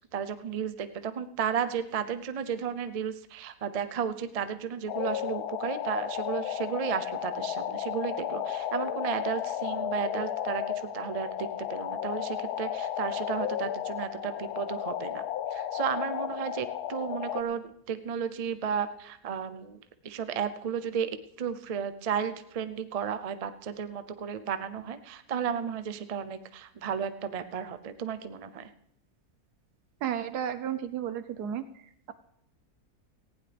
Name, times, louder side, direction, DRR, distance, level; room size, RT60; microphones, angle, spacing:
voice 1, 0.1-15.2 15.5-21.1 21.4-28.7, right 7 dB, 55° right, 11 dB, 0.4 m, -33 dB
sound 1, 4.9-17.4, left 10 dB, 85° left, 1.3 m, -33 dB
voice 2, 30.0-31.6, right 9 dB, 90° right, 11 dB, 1.3 m, -32 dB
18.5 x 15.5 x 3.4 m, 0.73 s
omnidirectional pair, 1.6 m